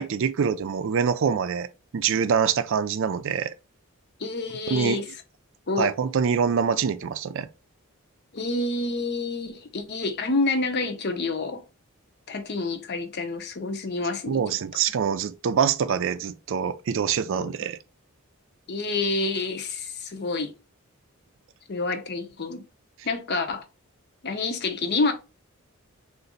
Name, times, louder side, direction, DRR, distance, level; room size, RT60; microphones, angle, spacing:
voice 1, 0.0-1.7 1.9-3.5 4.7-5.0 5.8-7.5 14.3-17.8, right 7 dB, 60° right, 0.4 m, -25 dB
voice 2, 4.2-5.1 5.7-5.9 8.3-11.6 12.3-14.4 17.4-17.5 18.7-20.5 21.7-22.7 23.0-23.6 24.2-25.1, left 3 dB, 50° left, 0.7 m, -28 dB
3.9 x 2.5 x 3.8 m
head